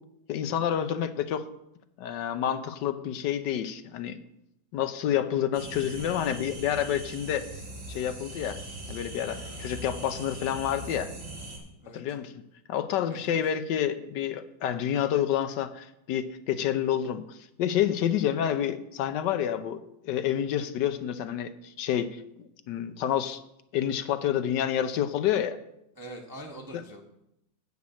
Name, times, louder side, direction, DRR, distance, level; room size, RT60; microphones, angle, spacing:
voice 1, 0.3-1.4 2.0-4.2 4.7-7.5 7.9-8.6 8.9-11.1 11.9-12.4 12.7-23.4 23.7-25.6 26.7-26.8, left 10 dB, 75° left, 10 dB, 1.3 m, -29 dB
sound 1, 5.5-11.6, right 1 dB, 65° right, 3.0 m, -40 dB
voice 2, 13.1-13.4 26.0-27.0, right 1 dB, 15° right, 1 dB, 0.7 m, -43 dB
8.5 x 6.2 x 7.0 m, 0.82 s
omnidirectional pair, 1.9 m